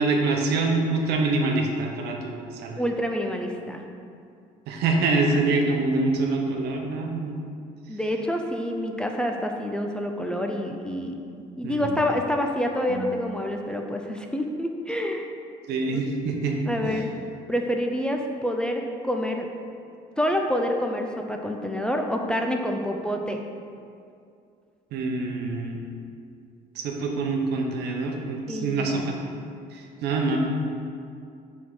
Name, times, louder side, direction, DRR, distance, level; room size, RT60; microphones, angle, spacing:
voice 1, 0.0-2.8 4.7-7.4 11.6-11.9 12.9-13.1 15.7-16.6 16.8-17.0 24.9-25.8 26.8-29.2 29.7-30.4, right 3 dB, 80° right, 1 dB, 0.8 m, -25 dB
voice 2, 2.8-3.8 7.3-7.4 7.9-11.2 11.6-15.3 15.9-16.0 16.7-17.1 17.5-19.5 20.2-23.4 28.5-29.1, equal, 5° left, 2 dB, 0.4 m, -27 dB
6.0 x 3.6 x 4.7 m, 2.4 s
cardioid pair, 110°, 17 cm